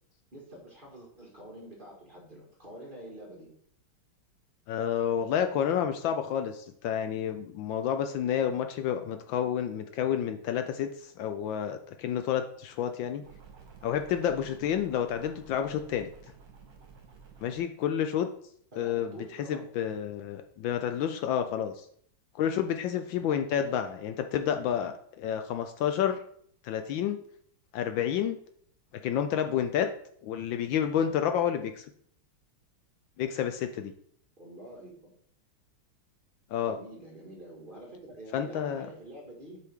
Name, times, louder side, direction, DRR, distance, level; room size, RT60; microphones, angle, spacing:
voice 1, 0.3-3.5 18.7-19.6 23.7-23.9 34.4-35.2 36.6-39.6, right 1 dB, 25° right, -3 dB, 1.9 m, -47 dB
voice 2, 4.7-13.2 13.8-16.1 17.4-18.3 18.8-21.9 22.4-26.2 26.6-27.2 27.7-28.4 29.0-29.9 30.2-31.9 33.2-33.9 36.5-36.8 38.3-38.9, left 9 dB, 75° left, 7 dB, 1.3 m, -30 dB
sound 1, 13.2-17.6, right 5 dB, 60° right, 1.9 m, -52 dB
7.6 x 5.6 x 3.6 m, 0.63 s
omnidirectional pair, 2.3 m